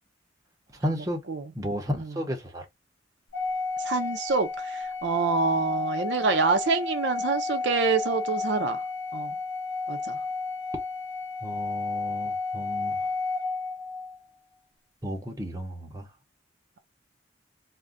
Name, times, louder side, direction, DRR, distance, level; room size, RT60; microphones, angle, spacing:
voice 1, 0.7-1.2 1.5-2.7 11.4-13.1 15.0-16.1, equal, 20° right, 0.7 m, -33 dB
Organ, 3.3-14.2, left 4 dB, 80° left, 0.8 m, -32 dB
voice 2, 3.8-8.8 9.1-9.4 9.9-10.2, right 4 dB, 65° right, 0.6 m, -26 dB
2.5 x 2.1 x 3.6 m
head